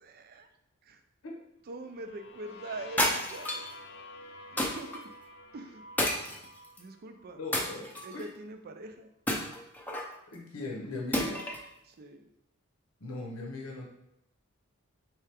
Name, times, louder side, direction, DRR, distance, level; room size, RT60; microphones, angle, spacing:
voice 1, 0.0-0.5 0.9-1.0 1.7-3.6 4.5-5.1 5.5-5.8 6.8-7.7 8.0-9.1 11.9-12.3, right 2 dB, 45° right, 7 dB, 0.4 m, -43 dB
sound 1, 1.8-7.7, left 1 dB, 55° left, 0.6 m, -49 dB
sound 2, 3.0-3.7 4.6-5.0 6.0-6.8 7.5-8.3 9.3-10.1 11.1-11.7, left 1 dB, 10° left, 0.6 m, -31 dB
voice 2, 7.4-7.9 8.1-8.3 10.3-11.4 13.0-13.9, left 2 dB, 80° left, 0 dB, 0.9 m, -38 dB
4.5 x 3.3 x 3.4 m, 0.82 s
head